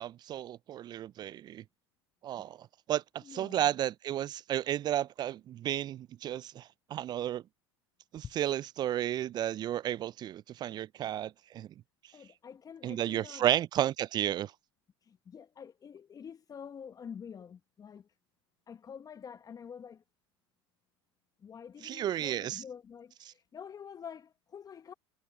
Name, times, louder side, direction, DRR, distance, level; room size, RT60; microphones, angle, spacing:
voice 1, 0.0-1.6 2.2-7.4 8.1-11.7 12.8-14.5 21.8-22.6, right 11 dB, 30° right, 0.4 m, -33 dB
voice 2, 3.2-3.7 12.1-13.4 15.0-18.1 18.7-20.0 21.4-24.9, left 7 dB, 25° left, 1.1 m, -47 dB
hypercardioid pair, 85°, 15 cm